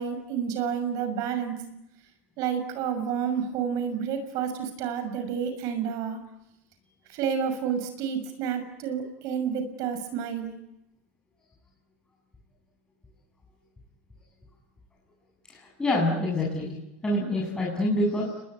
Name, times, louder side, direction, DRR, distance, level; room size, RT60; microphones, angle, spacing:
voice 1, 0.0-1.6 2.4-6.2 7.1-10.5, right 7 dB, 50° right, 9 dB, 6.3 m, -30 dB
voice 2, 15.5-16.7 17.0-18.4, left 1 dB, 10° left, -3 dB, 7.6 m, -26 dB
29.5 x 21.5 x 9.5 m, 0.91 s
supercardioid pair, 125°, 7 cm